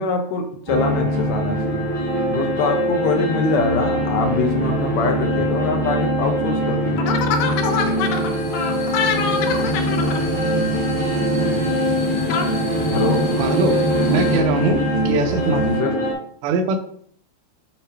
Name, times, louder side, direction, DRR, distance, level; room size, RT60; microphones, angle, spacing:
voice 1, 0.0-1.8 2.3-10.2 12.3-12.5 12.9-13.2 15.5-15.9, left 4 dB, 80° left, 4 dB, 1.9 m, -24 dB
sound 1, 0.7-16.1, equal, 15° right, 2.2 m, -22 dB
sound 2, 7.3-14.4, left 2 dB, 50° left, 2.1 m, -31 dB
sound 3, 9.1-15.8, right 1 dB, 65° right, 2.5 m, -33 dB
voice 2, 13.4-13.8 14.1-15.6 16.4-16.8, right 3 dB, 85° right, 7 dB, 3.1 m, -21 dB
7.2 x 7.1 x 2.8 m, 0.63 s
omnidirectional pair, 4.9 m